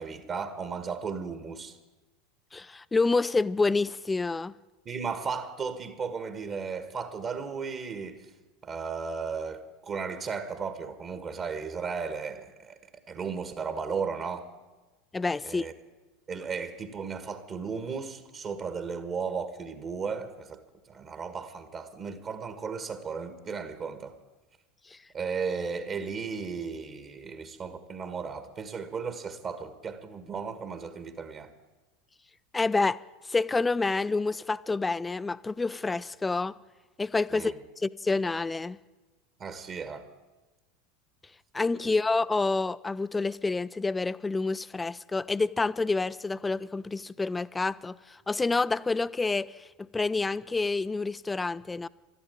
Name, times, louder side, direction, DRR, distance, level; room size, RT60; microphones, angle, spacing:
voice 1, 0.0-1.8 4.8-8.2 8.6-12.8 13.1-14.5 15.4-15.7 16.3-20.6 20.9-24.2 25.1-31.5 37.3-37.5 39.4-40.0 41.8-42.0, right 5 dB, 35° right, 10 dB, 1.6 m, -35 dB
voice 2, 2.5-4.5 15.1-15.7 24.9-25.0 32.5-33.0 33.3-36.5 37.0-38.8 41.5-49.7 49.9-51.9, left 3 dB, 15° left, 17 dB, 0.5 m, -28 dB
13.0 x 12.5 x 8.8 m, 1.2 s
figure-of-eight pair, 80°, 0 cm